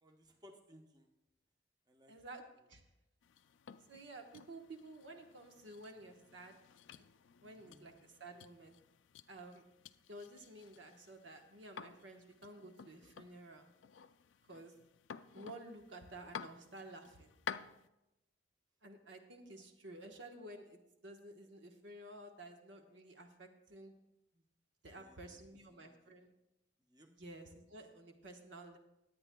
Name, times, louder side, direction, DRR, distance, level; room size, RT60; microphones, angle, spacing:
voice 1, 0.0-1.1 1.9-2.1 7.5-7.9 24.9-25.4 25.7-26.1 26.9-27.1, equal, 20° right, 3 dB, 0.9 m, -62 dB
voice 2, 2.1-2.4 2.7-2.8 3.9-6.6 7.4-8.7 9.3-9.6 10.1-13.7 14.5-14.7 15.3-17.3 18.8-23.9 24.8-26.3 27.1-28.8, right 2 dB, 80° right, 5 dB, 1.2 m, -52 dB
sound 1, 3.2-17.9, left 7 dB, 90° left, 0.4 m, -53 dB
20.5 x 8.7 x 2.3 m, 0.91 s
head